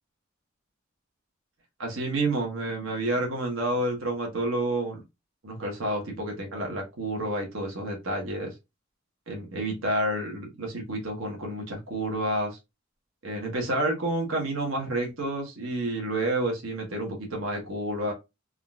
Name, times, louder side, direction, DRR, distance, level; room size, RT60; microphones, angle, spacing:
voice 1, 1.8-5.0 5.4-8.5 9.3-12.6 13.2-18.1, right 1 dB, 80° right, 1 dB, 1.0 m, -29 dB
3.6 x 2.4 x 2.3 m, 0.23 s
head